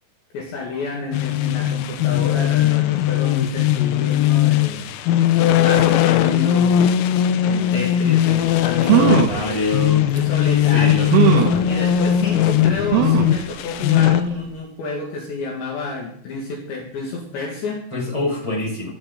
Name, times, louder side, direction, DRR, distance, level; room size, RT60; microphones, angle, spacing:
voice 1, 0.3-5.0 5.4-6.8 7.4-9.6 10.1-17.9, left 3 dB, 65° left, -1 dB, 3.9 m, -29 dB
sound 1, 1.1-14.2, left 11 dB, 90° left, 3.5 m, -19 dB
sound 2, 8.4-8.5 8.8-9.4 10.2-10.3 11.1-11.6 12.9-13.4 13.9-14.0 14.3-14.4, right 11 dB, 75° right, 2.2 m, -18 dB
voice 2, 8.9-10.0 10.7-11.5 17.9-18.9, left 2 dB, 5° left, -3 dB, 4.6 m, -25 dB
16.0 x 11.0 x 3.9 m, 0.63 s
omnidirectional pair, 5.9 m